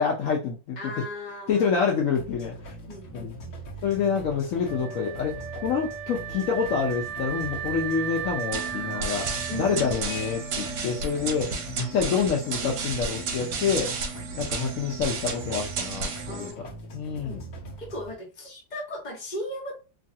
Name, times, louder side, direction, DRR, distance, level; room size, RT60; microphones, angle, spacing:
voice 1, 0.0-0.8 1.5-2.8 3.1-3.3 3.8-13.9 14.3-16.5 16.9-17.4, left 6 dB, 75° left, 0.7 m, -27 dB
voice 2, 0.8-1.7 2.9-3.6 9.5-10.0 16.3-16.8 17.2-17.4 17.8-19.8, left 1 dB, 30° left, 0.9 m, -37 dB
sound 1, 2.2-18.1, right 1 dB, 55° left, 1.0 m, -41 dB
Wind instrument woodwind instrument, 4.6-11.7, right 8 dB, 45° right, 0.8 m, -36 dB
sound 2, 8.5-16.5, right 4 dB, 70° right, 1.2 m, -33 dB
3.1 x 2.4 x 2.7 m
omnidirectional pair, 2.1 m